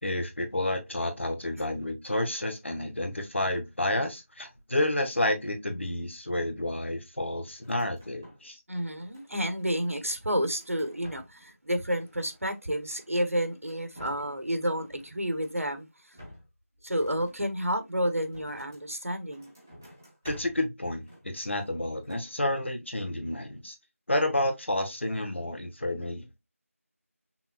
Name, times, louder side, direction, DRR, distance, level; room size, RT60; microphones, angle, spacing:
voice 1, 0.0-8.6 20.2-23.8 24.1-26.4, left 1 dB, 50° left, 1.8 m, -30 dB
sound 1, 7.6-8.5 8.8-9.6 10.1-11.6 11.8-13.3 13.7-14.4 14.7-15.7 16.1-18.9 19.3-20.7 21.0-21.8 22.0-22.3, equal, 10° right, 0.9 m, -51 dB
voice 2, 8.7-16.2 16.8-19.5, equal, 70° right, 1.5 m, -30 dB
5.9 x 3.7 x 2.4 m
figure-of-eight pair, 170°, 8 cm